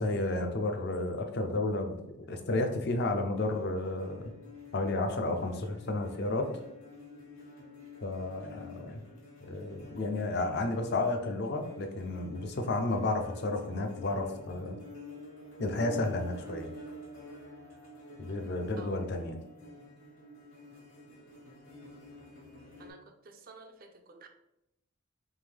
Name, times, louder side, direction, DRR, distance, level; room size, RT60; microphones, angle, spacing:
voice 1, 0.0-4.3 4.7-6.5 8.0-9.0 9.5-14.8 15.6-16.7 18.2-19.4, left 2 dB, 50° left, 5 dB, 0.5 m, -32 dB
sound 1, 3.4-22.9, left 2 dB, 70° left, 1.4 m, -49 dB
voice 2, 23.3-24.3, right 4 dB, 45° right, 6 dB, 0.5 m, -51 dB
3.7 x 3.0 x 3.4 m, 0.85 s
head